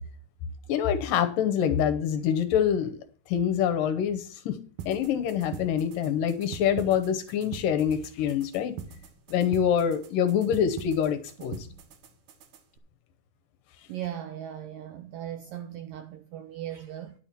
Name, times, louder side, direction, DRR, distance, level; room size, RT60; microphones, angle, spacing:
voice 1, 0.7-3.0 3.3-4.6 4.9-8.8 9.3-11.7, left 8 dB, 75° left, 2.1 m, -25 dB
sound 1, 4.8-12.8, right 7 dB, 65° right, 2.2 m, -43 dB
voice 2, 13.9-17.1, right 11 dB, 85° right, 1.9 m, -38 dB
10.5 x 6.9 x 5.8 m
omnidirectional pair, 4.9 m